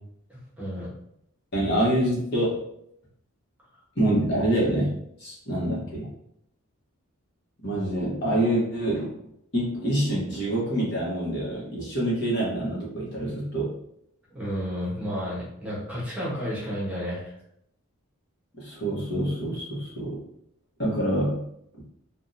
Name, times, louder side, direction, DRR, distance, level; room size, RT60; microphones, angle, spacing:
voice 1, 0.3-0.9 3.7-3.8 14.3-17.3, equal, 5° right, -8 dB, 1.0 m, -32 dB
voice 2, 1.5-2.6 3.9-6.1 7.6-9.1 9.5-13.7 18.5-20.2 20.8-21.4, right 1 dB, 50° left, -6 dB, 1.1 m, -26 dB
3.5 x 2.3 x 2.6 m, 0.74 s
head